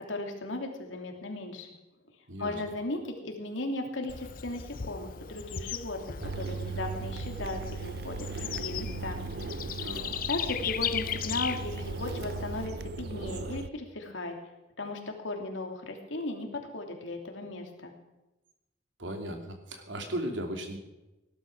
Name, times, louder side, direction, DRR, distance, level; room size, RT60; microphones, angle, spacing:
voice 1, 0.1-1.7 2.4-9.2 10.3-14.3 14.8-17.9, left 2 dB, 85° left, 3 dB, 2.9 m, -36 dB
Bird / Insect, 4.1-12.7, left 8 dB, 45° left, 0.6 m, -37 dB
sound 1, 6.2-13.7, right 4 dB, 55° right, 0.5 m, -38 dB
voice 2, 19.0-20.8, right 1 dB, 75° right, 4 dB, 2.9 m, -36 dB
18.0 x 12.0 x 6.2 m, 1.0 s
head